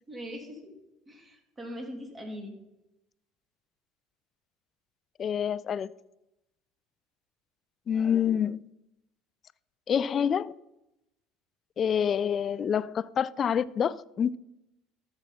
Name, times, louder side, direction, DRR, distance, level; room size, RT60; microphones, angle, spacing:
voice 1, 0.1-0.7 1.1-2.6, equal, 20° right, 2.7 m, -41 dB
voice 2, 5.2-5.9 7.9-8.6 9.9-10.5 11.8-14.4, left 8 dB, 40° left, 0.3 m, -27 dB
13.0 x 7.4 x 4.1 m
hypercardioid pair, 75°, 0 cm